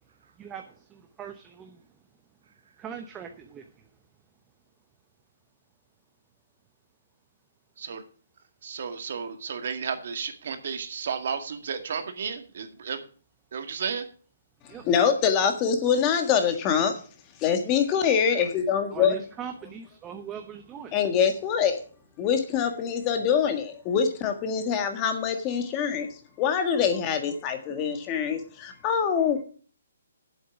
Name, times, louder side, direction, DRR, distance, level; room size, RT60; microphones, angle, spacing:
voice 1, 0.4-1.8 2.8-3.6 14.7-14.9 18.9-21.0, right 7 dB, 15° right, 6 dB, 0.8 m, -40 dB
voice 2, 8.6-13.0 13.5-14.0, right 6 dB, 55° right, 7 dB, 1.9 m, -33 dB
voice 3, 14.8-17.0 17.4-19.2 20.9-21.8 22.2-26.1 26.4-29.4, left 7 dB, 20° left, 6 dB, 1.6 m, -24 dB
8.3 x 7.8 x 7.1 m, 0.41 s
hypercardioid pair, 155°, 0 cm